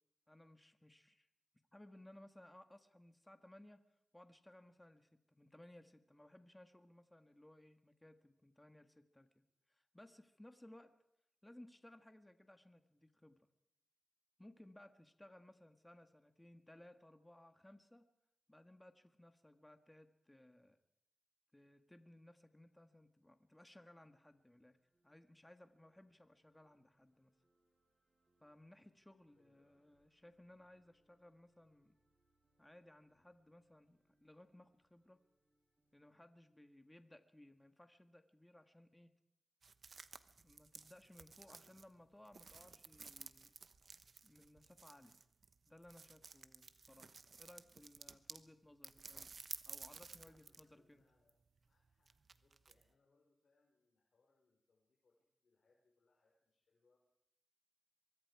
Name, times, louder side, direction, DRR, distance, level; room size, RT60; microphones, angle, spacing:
voice 1, 0.3-1.3 1.7-3.8 4.1-10.9 11.4-13.5 14.4-18.0 18.5-20.8 21.5-24.8 25.0-27.3 28.4-31.9 32.6-35.2 35.9-39.1 40.4-43.5 44.2-45.2 45.7-47.1 47.4-49.3 49.6-51.0, left 1 dB, 15° left, 8 dB, 1.7 m, -62 dB
sound 1, 24.3-36.3, right 1 dB, 30° right, 6.9 m, -84 dB
voice 2, 29.3-29.9 50.2-51.4 51.7-57.0, left 3 dB, 70° left, -2 dB, 4.9 m, -79 dB
sound 2, 39.6-48.5 48.8-50.7 51.0-52.8, right 4 dB, 60° right, 1.0 m, -55 dB
24.0 x 23.0 x 4.8 m, 0.79 s
cardioid pair, 75°, 0 cm